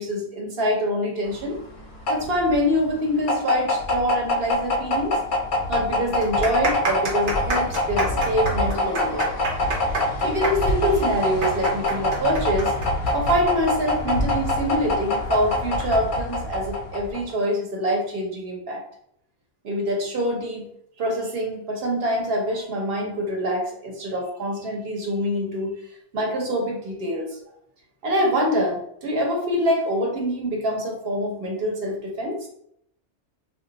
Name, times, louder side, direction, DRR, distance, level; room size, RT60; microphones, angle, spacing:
voice 1, 0.0-1.6 2.1-5.2 5.7-9.3 10.2-12.7 13.1-18.8 19.6-20.7 21.0-25.7 26.1-27.4 28.0-32.5, equal, 60° right, 0 dB, 1.0 m, -25 dB
sound 1, 1.3-17.3, left 1 dB, 55° left, 0.6 m, -25 dB
sound 2, 5.0-5.1 5.4-5.5 6.1-13.4 13.6-13.7 14.5-14.8, right 2 dB, 85° right, 1.1 m, -27 dB
2.2 x 2.2 x 3.8 m, 0.71 s
omnidirectional pair, 1.2 m